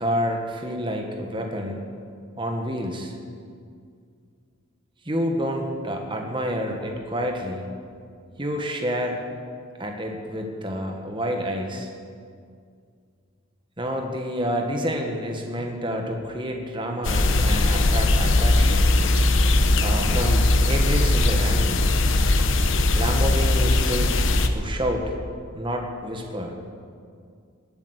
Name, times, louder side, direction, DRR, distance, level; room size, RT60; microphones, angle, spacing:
voice 1, 0.0-1.8 2.4-3.1 5.0-7.6 8.4-9.2 9.8-11.9 13.8-18.9 19.8-21.8 22.9-24.2 24.5-25.2 25.5-26.6, equal, 20° right, 2 dB, 1.5 m, -28 dB
sound 1, 17.0-24.5, left 2 dB, 60° left, 1.0 m, -19 dB
19.5 x 8.9 x 8.1 m, 2.2 s
head